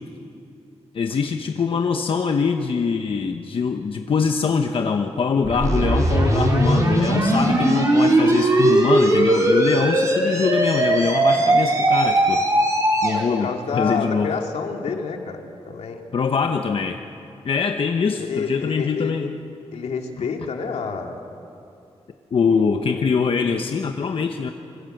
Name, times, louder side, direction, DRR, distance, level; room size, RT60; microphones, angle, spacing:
voice 1, 0.9-12.4 13.0-14.3 16.1-17.0 17.4-19.4 22.3-24.5, left 5 dB, 55° left, 5 dB, 1.1 m, -23 dB
sound 1, 5.4-13.2, right 1 dB, 30° right, 4.5 m, -19 dB
voice 2, 13.1-16.0 18.2-19.1 19.7-21.2 22.6-23.0 24.4-24.5, left 5 dB, 80° left, 2 dB, 2.6 m, -29 dB
25.5 x 24.5 x 7.9 m, 2.7 s
wide cardioid pair, 115°, 11 cm